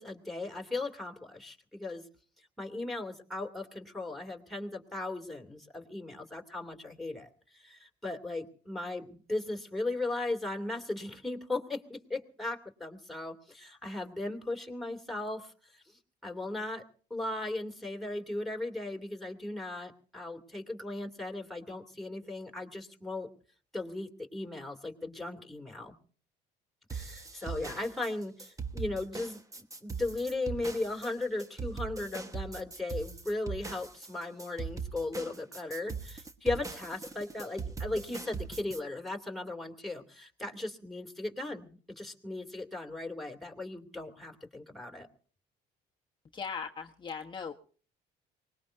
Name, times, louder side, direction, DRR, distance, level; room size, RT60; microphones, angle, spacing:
voice 1, 0.0-2.0 2.6-15.8 16.2-16.8 17.1-23.3 23.7-25.9 26.9-45.1, left 2 dB, ahead, 2 dB, 2.7 m, -37 dB
sound 1, 26.9-38.8, right 5 dB, 20° right, 1.2 m, -40 dB
voice 2, 46.3-47.5, left 6 dB, 30° left, 1 dB, 1.1 m, -38 dB
24.0 x 20.5 x 2.6 m, 0.43 s
cardioid pair, 110°, 17 cm